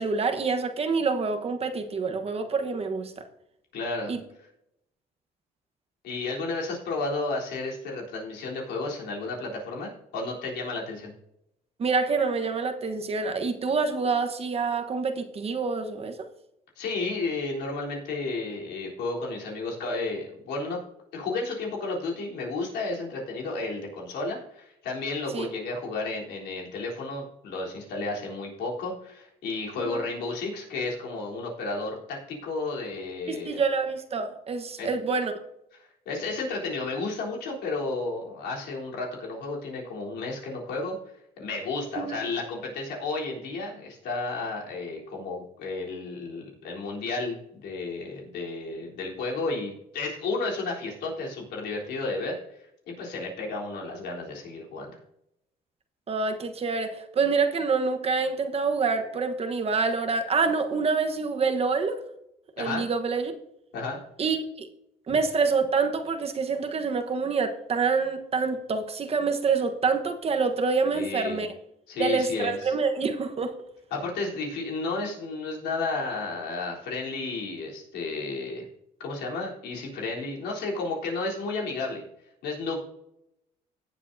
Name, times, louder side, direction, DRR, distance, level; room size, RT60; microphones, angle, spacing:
voice 1, 0.0-3.1 4.1-4.2 11.8-16.1 25.3-25.5 29.8-30.0 33.3-35.3 42.0-42.2 56.1-62.0 62.6-63.3 64.2-64.7 65.1-71.5 72.0-73.5, right 4 dB, 35° right, 6 dB, 1.2 m, -26 dB
voice 2, 3.7-4.1 6.0-11.1 16.8-20.8 21.1-33.6 34.8-34.9 35.8-41.0 41.4-52.6 53.0-55.0 62.6-62.8 63.7-64.0 65.1-65.2 70.9-71.4 71.9-72.7 73.9-78.7 79.0-82.0 82.4-82.8, left 3 dB, 75° left, -2 dB, 3.7 m, -32 dB
17.0 x 7.4 x 2.7 m, 0.80 s
cardioid pair, 110°, 17 cm